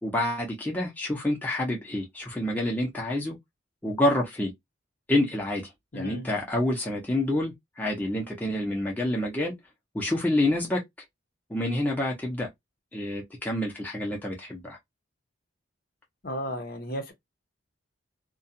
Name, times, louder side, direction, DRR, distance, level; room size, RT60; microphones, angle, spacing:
voice 1, 0.0-3.4 3.8-4.5 5.1-5.6 5.9-9.5 9.9-10.8 11.5-12.5 12.9-14.8, left 1 dB, 10° left, 0.7 m, -27 dB
voice 2, 5.9-6.3 16.2-17.1, equal, 50° left, 0.8 m, -34 dB
2.4 x 2.3 x 2.7 m
head